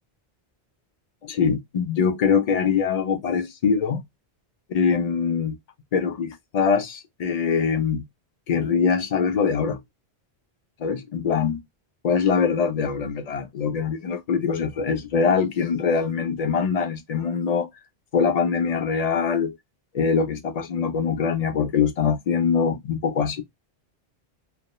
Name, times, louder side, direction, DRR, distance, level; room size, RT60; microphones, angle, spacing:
voice 1, 1.2-4.0 4.7-5.6 5.9-8.1 8.5-9.8 10.8-11.6 12.0-17.7 18.1-19.6 19.9-23.4, left 6 dB, 50° left, 0.5 m, -23 dB
2.2 x 2.1 x 2.8 m
omnidirectional pair, 1.1 m